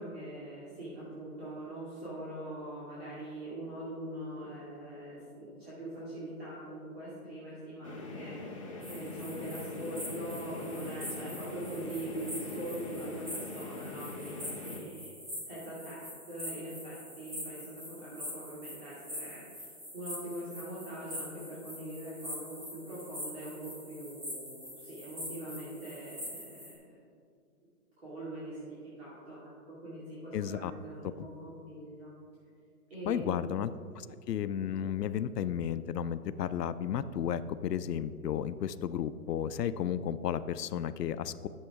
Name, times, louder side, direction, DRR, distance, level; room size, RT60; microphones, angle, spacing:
voice 1, 0.0-8.6 8.9-15.1 15.5-27.0 28.0-32.1 32.9-33.4, right 1 dB, 40° right, -9 dB, 2.3 m, -42 dB
sound 1, 7.8-14.8, left 2 dB, 20° left, 0.8 m, -43 dB
sound 2, 8.8-26.7, left 1 dB, 20° right, 1.7 m, -44 dB
voice 2, 30.3-30.7 33.1-33.7 34.0-41.5, left 9 dB, 85° left, 14 dB, 0.6 m, -33 dB
11.0 x 7.2 x 3.5 m, 2.2 s
hypercardioid pair, 180°, 47 cm